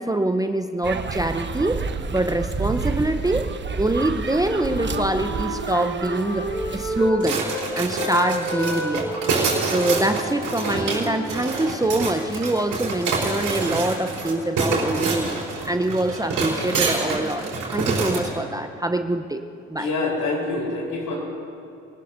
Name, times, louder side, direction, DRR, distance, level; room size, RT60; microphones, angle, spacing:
voice 1, 0.0-1.8 2.1-3.5 3.8-7.4 7.7-9.1 9.6-15.3 15.6-17.5 17.7-19.4 19.7-19.9, right 1 dB, 10° right, 7 dB, 0.7 m, -24 dB
sound 1, 0.8-7.1, right 4 dB, 30° right, 1.0 m, -30 dB
Wind instrument woodwind instrument, 4.2-7.6 7.9-11.8, right 1 dB, 90° left, 2.8 m, -31 dB
sound 2, 7.2-18.3, right 3 dB, 55° right, 4.2 m, -26 dB
voice 2, 19.8-21.2, left 3 dB, 60° left, -1 dB, 4.0 m, -26 dB
23.5 x 19.0 x 2.7 m, 2.6 s
hypercardioid pair, 45°, 36 cm